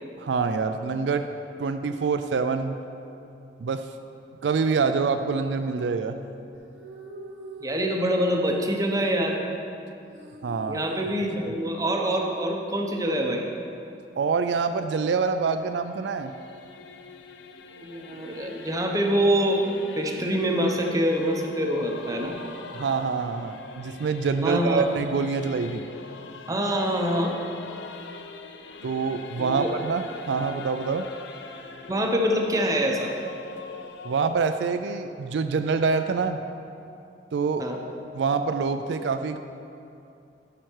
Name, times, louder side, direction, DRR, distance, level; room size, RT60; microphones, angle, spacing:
voice 1, 0.2-1.3 1.6-2.8 3.6-3.9 4.4-6.2 10.4-10.8 14.2-16.3 22.7-25.9 28.8-31.1 34.0-36.4 37.3-37.7 38.1-39.4, right 5 dB, 75° right, 8 dB, 0.4 m, -26 dB
sound 1, 6.5-13.6, right 2 dB, 90° right, 1.1 m, -45 dB
voice 2, 7.6-9.4 10.7-13.5 17.8-19.6 20.0-22.4 24.4-24.9 26.5-27.3 29.4-29.7 31.9-33.1 37.6-37.8, equal, 20° right, 1 dB, 0.8 m, -25 dB
Singing / Musical instrument, 15.0-34.3, left 4 dB, 75° left, 0.5 m, -43 dB
11.0 x 5.8 x 4.6 m, 2.7 s
head